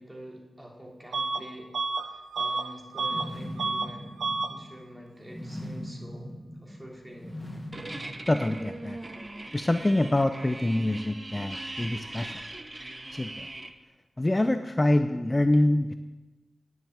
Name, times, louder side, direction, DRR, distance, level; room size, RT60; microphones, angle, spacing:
voice 1, 0.0-1.7 2.1-4.2 4.5-6.3 6.6-7.4, equal, 15° right, -1 dB, 3.1 m, -46 dB
Bus / Alarm, 1.1-1.4 1.7-3.3 3.6-3.9 4.2-4.5, right 3 dB, 85° right, 0.7 m, -30 dB
sound 1, 3.0-9.0, equal, 10° left, 1.6 m, -41 dB
sound 2, 7.7-13.7, right 2 dB, 35° right, 1.0 m, -40 dB
voice 2, 8.3-9.0 9.5-12.4 13.1-13.5 14.2-15.9, left 1 dB, 25° left, 8 dB, 0.6 m, -25 dB
10.0 x 7.2 x 7.9 m, 1.1 s
cardioid pair, 45°, 0 cm